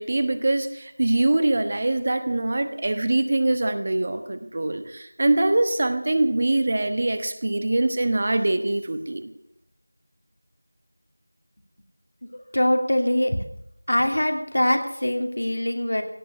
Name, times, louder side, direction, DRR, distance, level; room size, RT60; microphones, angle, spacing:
voice 1, 0.0-9.3, right 2 dB, 35° right, 10 dB, 1.2 m, -23 dB
voice 2, 12.3-13.4 13.9-16.0, left 1 dB, 75° left, 5 dB, 2.8 m, -23 dB
17.0 x 8.3 x 9.6 m, 0.74 s
figure-of-eight pair, 175°, 0 cm